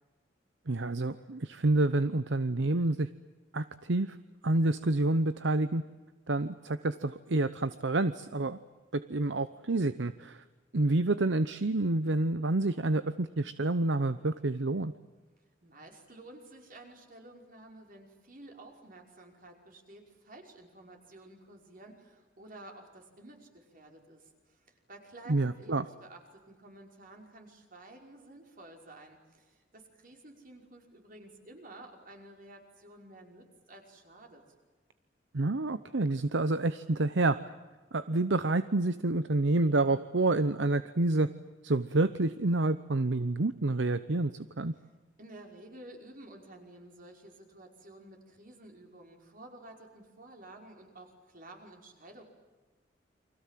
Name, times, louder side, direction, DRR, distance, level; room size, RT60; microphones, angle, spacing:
voice 1, 0.7-3.1 3.5-4.2 4.4-5.8 6.3-8.6 8.9-10.4 10.7-14.9 25.3-25.8 35.3-37.4 37.9-41.3 41.6-44.3 44.6-44.7, right 2 dB, 70° right, 13 dB, 0.9 m, -28 dB
voice 2, 15.6-34.4 45.2-52.2, right 2 dB, 50° right, 2 dB, 5.5 m, -52 dB
30.0 x 24.5 x 7.6 m, 1.3 s
head